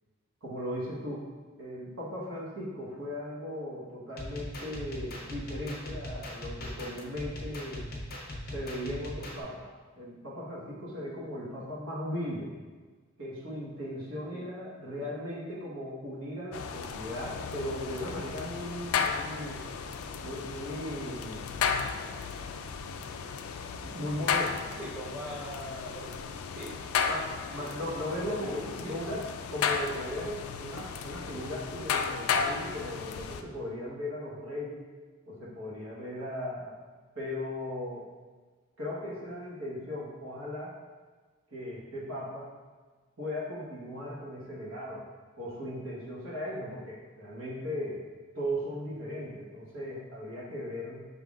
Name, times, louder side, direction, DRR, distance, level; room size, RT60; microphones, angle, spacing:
voice 1, 0.4-1.3 1.6-7.9 8.5-9.7 10.0-12.6 13.2-19.6 20.2-21.5 23.8-24.7 27.0-34.8 35.3-36.8 37.1-38.1 38.8-40.7 41.5-42.5 43.2-45.1 45.4-48.0 48.3-51.0, left 1 dB, 70° right, -5 dB, 1.2 m, -37 dB
sound 1, 4.2-9.4, left 1 dB, 45° left, 0.7 m, -40 dB
sound 2, 16.5-33.4, left 6 dB, 85° left, 0.3 m, -34 dB
voice 2, 24.8-26.1 26.6-26.7 27.0-27.1 27.6-27.9 28.3-29.0, equal, 10° right, -8 dB, 0.7 m, -41 dB
5.5 x 3.7 x 2.4 m, 1.4 s
head